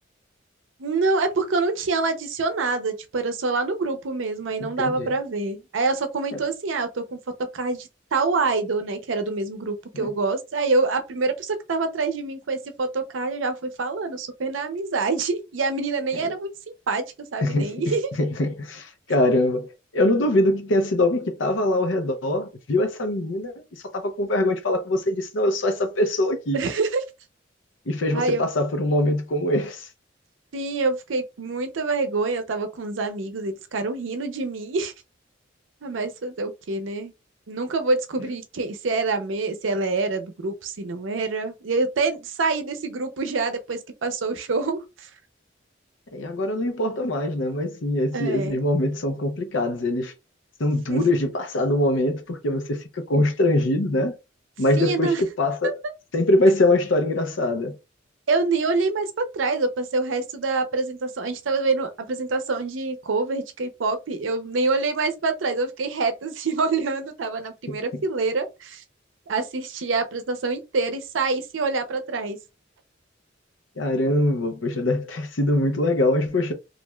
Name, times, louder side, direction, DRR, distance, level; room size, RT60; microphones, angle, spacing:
voice 1, 0.8-7.2 7.5-16.5 16.9-17.0 17.3-18.1 26.5-27.0 28.1-28.5 30.5-34.9 35.8-37.1 37.5-45.1 48.1-48.6 50.9-51.0 54.8-55.2 55.6-55.7 58.3-68.8 69.3-72.4, right 3 dB, 85° right, 0.6 m, -26 dB
voice 2, 4.6-5.1 6.3-6.4 9.9-10.1 17.4-23.5 23.9-26.6 27.9-29.9 46.1-50.1 50.6-54.1 54.6-55.8 56.1-57.7 67.7-68.0 73.8-76.5, left 1 dB, 80° left, 0.6 m, -23 dB
3.1 x 2.4 x 2.2 m
head